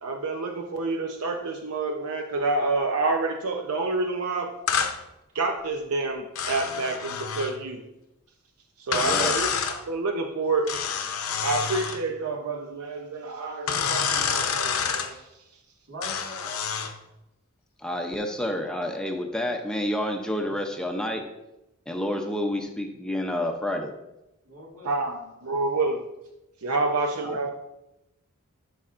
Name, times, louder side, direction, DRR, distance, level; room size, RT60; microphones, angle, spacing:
voice 1, 0.0-4.6 5.3-7.8 8.8-10.7 11.4-15.2 24.8-26.0 26.6-27.5, right 3 dB, 90° right, 3 dB, 0.7 m, -28 dB
sound 1, 4.7-5.0 6.4-7.6 8.9-9.8 10.7-12.0 13.7-15.1 16.0-16.9, left 6 dB, 75° left, 0.7 m, -27 dB
voice 2, 9.0-9.3 17.8-21.2 21.9-23.9 27.2-27.4, left 1 dB, 5° left, 3 dB, 0.5 m, -29 dB
voice 3, 15.9-16.6 24.4-25.0 25.4-25.6 26.7-27.4, equal, 70° right, -2 dB, 2.2 m, -43 dB
11.5 x 5.6 x 2.5 m, 0.91 s
head